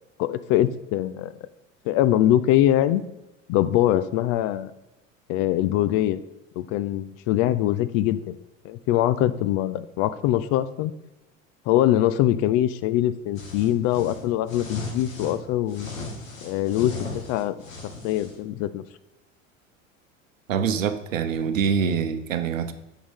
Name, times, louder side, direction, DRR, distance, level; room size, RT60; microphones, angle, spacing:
voice 1, 0.2-1.3 1.9-3.0 3.5-4.7 5.3-6.2 6.7-8.4 8.6-10.9 11.7-15.9 16.4-17.0 17.3-17.5 18.0-18.8, left 13 dB, 40° left, 14 dB, 0.4 m, -23 dB
sound 1, 13.4-15.4 15.7-18.4, left 3 dB, 75° left, 1.8 m, -36 dB
voice 2, 20.5-22.7, right 7 dB, 75° right, 10 dB, 0.9 m, -25 dB
8.5 x 5.8 x 3.5 m, 0.99 s
figure-of-eight pair, 75°, 40 cm